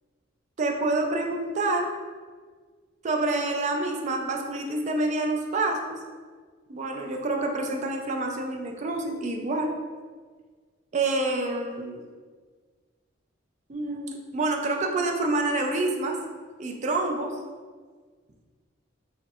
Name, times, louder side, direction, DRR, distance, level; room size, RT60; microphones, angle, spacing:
voice 1, 0.6-1.9 3.0-6.0 6.7-9.7 10.9-12.1 13.7-16.2 16.6-17.3, right 2 dB, 35° right, 2 dB, 0.4 m, -27 dB
4.2 x 3.1 x 2.4 m, 1.5 s
head